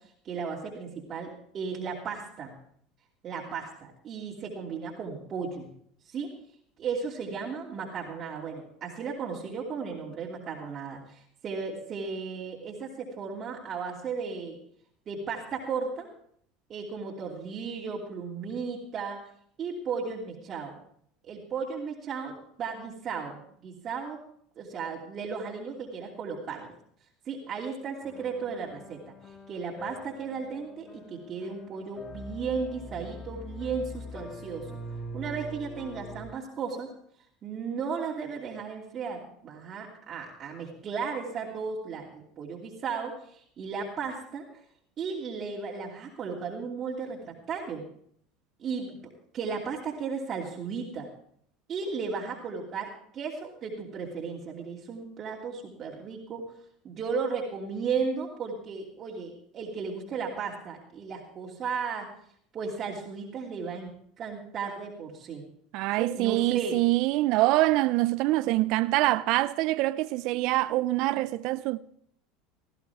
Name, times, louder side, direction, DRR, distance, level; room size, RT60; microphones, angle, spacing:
voice 1, 0.2-2.5 3.2-5.7 6.0-6.3 6.8-14.6 15.1-16.1 16.7-19.2 19.6-20.8 21.3-24.2 24.6-26.7 27.2-34.7 35.1-36.9 37.4-44.4 45.0-47.8 48.6-51.1 51.7-56.4 56.8-62.1 62.5-63.9 64.2-65.4 66.0-66.7, right 5 dB, 40° right, 2.9 m, -35 dB
sound 1, 28.0-36.3, equal, 30° left, 3.7 m, -43 dB
voice 2, 65.7-71.8, right 18 dB, 60° right, 0.5 m, -25 dB
18.0 x 14.0 x 3.6 m
hypercardioid pair, 90°, 0 cm